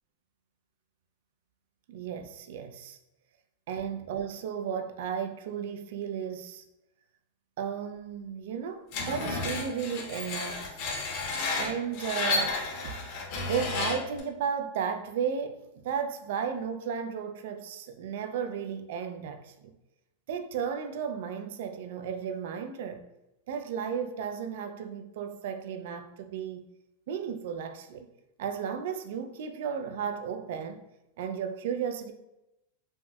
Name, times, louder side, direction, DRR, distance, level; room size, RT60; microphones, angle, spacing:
voice 1, 1.9-3.0 3.7-6.6 7.6-10.8 11.6-13.0 13.5-19.7 20.3-23.0 23.5-26.6 27.1-28.1 28.4-30.8 31.2-32.1, right 7 dB, 65° right, 0.3 m, -34 dB
Screech, 8.9-14.2, left 3 dB, 45° left, 0.6 m, -32 dB
4.1 x 2.0 x 2.2 m
supercardioid pair, 155°, 0 cm